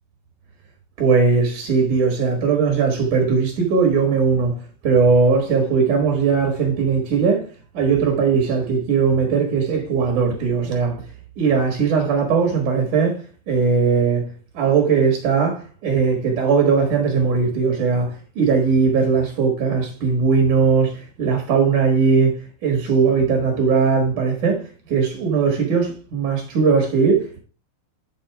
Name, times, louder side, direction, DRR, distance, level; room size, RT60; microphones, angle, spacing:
voice 1, 1.0-4.5 4.8-7.5 7.7-11.0 11.4-13.2 13.5-14.2 14.5-24.6 24.9-27.4, right 5 dB, 60° right, 2.9 m, -19 dB
11.0 x 4.1 x 4.7 m
omnidirectional pair, 4.2 m